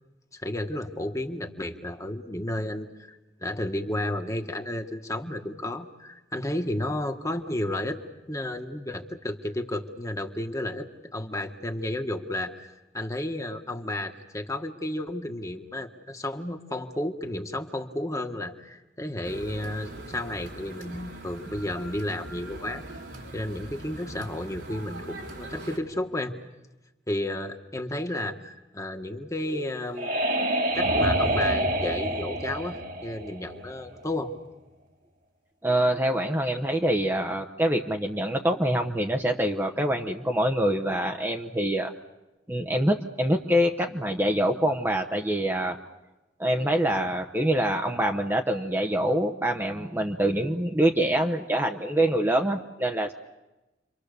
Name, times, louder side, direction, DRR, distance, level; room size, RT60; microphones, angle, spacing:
voice 1, 0.4-8.0 8.3-22.8 23.3-26.3 27.1-30.1 30.7-34.3, left 1 dB, 20° left, 5 dB, 1.5 m, -32 dB
sound 1, 19.2-25.8, right 1 dB, 85° right, 4.2 m, -42 dB
sound 2, 29.4-34.0, right 1 dB, 50° right, 1.9 m, -27 dB
voice 2, 35.6-41.9 42.5-45.8 46.4-53.1, right 1 dB, 10° right, 4 dB, 0.9 m, -25 dB
30.0 x 24.5 x 6.8 m, 1.0 s
head